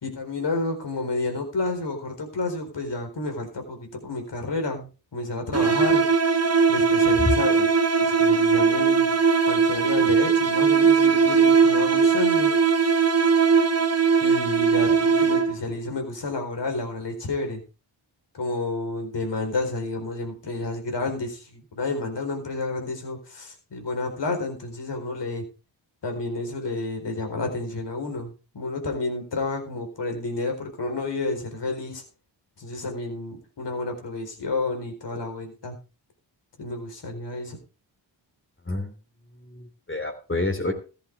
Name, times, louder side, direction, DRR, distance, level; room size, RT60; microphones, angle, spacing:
voice 1, 0.0-6.0 6.7-7.7 8.0-9.2 9.5-12.6 12.8-12.9 14.2-17.6 18.3-25.4 26.0-32.0 32.6-35.8 36.6-37.6, left 2 dB, 60° left, 5 dB, 4.4 m, -30 dB
sound 1, 5.5-15.7, right 5 dB, 30° right, 1.3 m, -20 dB
voice 2, 39.4-40.7, left 2 dB, 25° left, 4 dB, 3.4 m, -29 dB
14.0 x 11.0 x 3.6 m, 0.34 s
cardioid pair, 50°, 47 cm